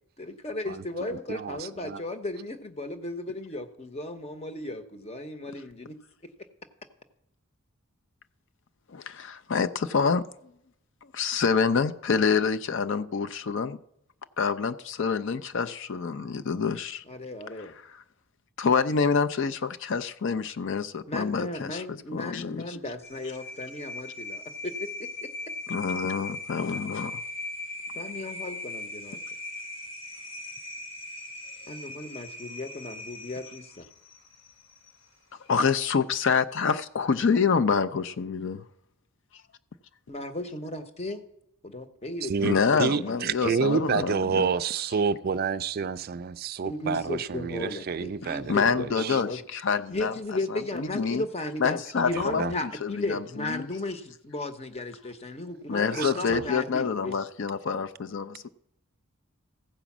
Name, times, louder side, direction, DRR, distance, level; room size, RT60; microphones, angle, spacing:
voice 1, 0.2-6.0 17.1-17.7 21.1-25.5 28.0-29.2 31.7-33.6 40.1-41.2 41.6-43.6 46.6-49.4 49.9-57.2, left 2 dB, 30° left, 0.8 m, -35 dB
voice 2, 1.1-2.0 42.2-49.2 52.2-52.5 55.9-56.4, right 5 dB, 45° right, 0.3 m, -29 dB
voice 3, 8.9-10.3 11.1-13.8 14.4-17.0 17.6-18.0 18.6-22.8 25.7-27.2 35.5-38.6 42.4-44.5 48.2-50.1 50.5-51.2 51.6-53.7 55.7-58.5, left 5 dB, 60° left, 0.5 m, -27 dB
sound 1, 23.0-35.1, left 2 dB, 85° left, 3.0 m, -39 dB
15.0 x 5.1 x 7.1 m
head